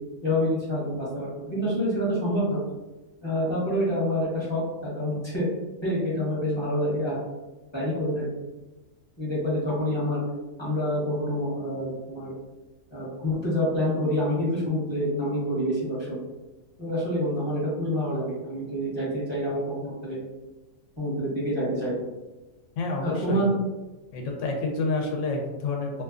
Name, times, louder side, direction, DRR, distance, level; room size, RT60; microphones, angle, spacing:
voice 1, 0.2-2.6 3.2-5.5 5.8-7.2 7.7-8.3 9.2-10.2 10.6-12.3 12.9-16.2 16.8-20.2 21.0-22.1 23.0-23.6, equal, 25° left, -9 dB, 0.8 m, -27 dB
voice 2, 22.8-23.5 24.1-26.0, left 3 dB, 70° left, 1 dB, 0.9 m, -28 dB
2.5 x 2.3 x 2.4 m, 1.1 s
omnidirectional pair, 1.4 m